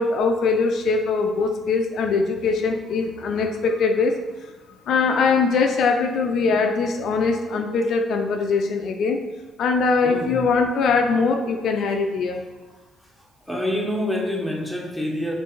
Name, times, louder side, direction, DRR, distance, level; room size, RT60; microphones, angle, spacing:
voice 1, 0.0-4.2 4.9-9.2 9.6-12.4, left 4 dB, 70° left, 4 dB, 0.3 m, -21 dB
voice 2, 10.0-10.4 12.7-12.8 13.4-15.3, left 1 dB, ahead, -1 dB, 0.8 m, -27 dB
4.4 x 2.5 x 3.0 m, 1.2 s
cardioid pair, 90°, 0 cm